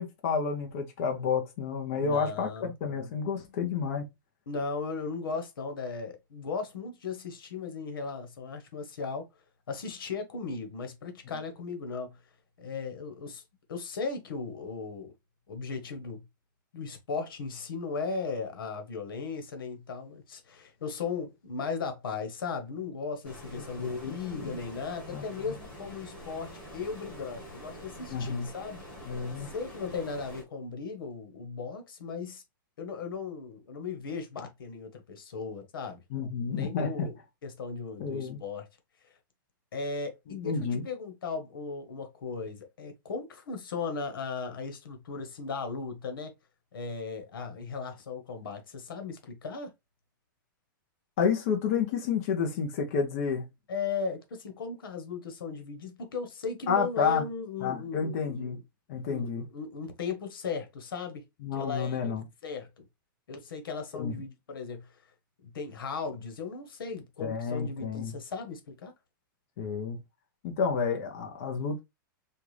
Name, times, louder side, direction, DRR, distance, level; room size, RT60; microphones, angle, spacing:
voice 1, 0.0-2.5 2.8-4.1 23.8-24.1 24.4-24.6 25.1-25.2 28.1-28.5 29.1-29.5 36.1-37.1 38.0-38.4 40.4-40.8 51.2-53.5 56.7-57.2 57.6-58.6 58.9-59.4 61.4-62.2 63.9-64.2 67.2-68.1 69.6-70.0 70.4-71.8, left 6 dB, 40° left, 0.9 m, -30 dB
voice 2, 2.0-2.7 4.5-9.3 9.7-12.2 12.6-13.4 13.7-15.1 15.5-16.2 16.7-28.8 29.4-32.4 32.8-36.0 36.4-37.1 37.4-38.7 39.0-39.1 39.7-46.3 46.7-49.7 53.7-58.6 59.1-61.3 61.5-62.0 62.4-62.8 63.3-65.1 65.5-68.9, left 4 dB, 85° left, 1.3 m, -37 dB
Stream, 23.2-30.4, equal, 10° left, 1.6 m, -46 dB
4.5 x 2.5 x 3.2 m
hypercardioid pair, 165°, 11 cm